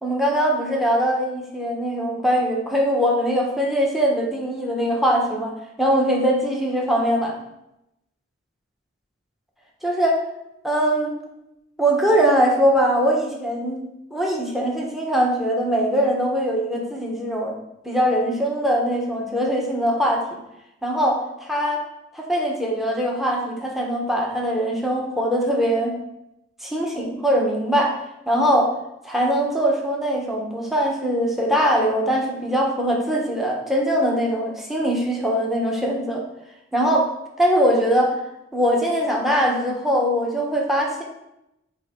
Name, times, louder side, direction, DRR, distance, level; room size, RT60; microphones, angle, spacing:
voice 1, 0.0-7.3 9.8-10.2 10.6-11.1 11.8-13.8 14.1-17.5 17.8-20.2 20.8-21.8 22.1-25.9 26.6-27.9 28.3-28.7 29.0-36.2 36.7-37.1 37.4-38.2 38.5-41.0, equal, ahead, -1 dB, 1.1 m, -21 dB
8.9 x 3.5 x 3.8 m, 0.86 s
head